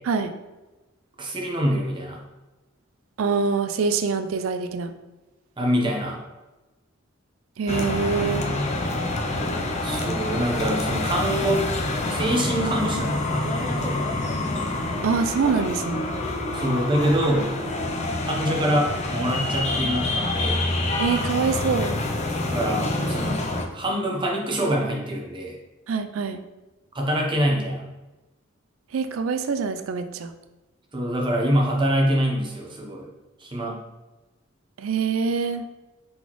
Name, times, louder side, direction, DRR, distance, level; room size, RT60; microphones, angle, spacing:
voice 1, 1.2-2.2 5.6-6.2 9.8-11.7 12.1-14.0 16.5-17.5 18.2-20.6 22.5-23.4 23.7-25.6 26.9-27.8 30.9-33.1 33.4-33.8, equal, 25° right, -1 dB, 0.8 m, -25 dB
voice 2, 3.2-4.9 7.6-8.5 15.0-16.1 21.0-21.9 25.9-26.4 28.9-30.3 34.8-35.6, right 5 dB, 80° right, 9 dB, 0.4 m, -25 dB
sound 1, 7.7-23.7, left 2 dB, 35° left, 0.5 m, -27 dB
4.0 x 3.8 x 3.0 m, 1.1 s
head